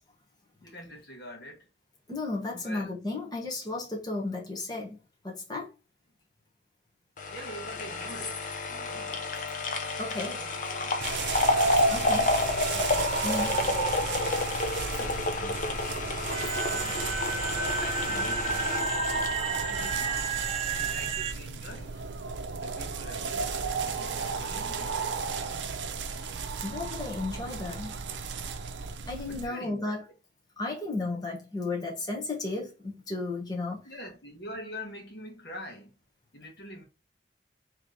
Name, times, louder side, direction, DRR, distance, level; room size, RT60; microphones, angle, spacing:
voice 1, 0.6-1.7 2.6-2.9 7.3-9.3 10.0-11.2 12.4-12.9 13.5-14.0 14.8-15.6 17.5-20.5 20.8-22.2 22.6-25.0 29.3-30.0 33.8-35.9 36.3-36.8, equal, 60° left, 1.4 m, -45 dB
voice 2, 2.1-5.0 5.2-5.7 10.0-10.4 11.9-12.3 12.9-13.6 26.6-27.9 29.1-30.0 30.6-33.8, left 2 dB, 20° left, 1.2 m, -34 dB
sound 1, 7.2-20.4 20.8-20.9, left 3 dB, 45° left, 0.7 m, -30 dB
sound 2, 11.0-29.5, right 4 dB, 85° right, 0.6 m, -33 dB
sound 3, 16.3-21.3, right 4 dB, 35° right, 0.5 m, -32 dB
3.3 x 3.1 x 3.9 m
head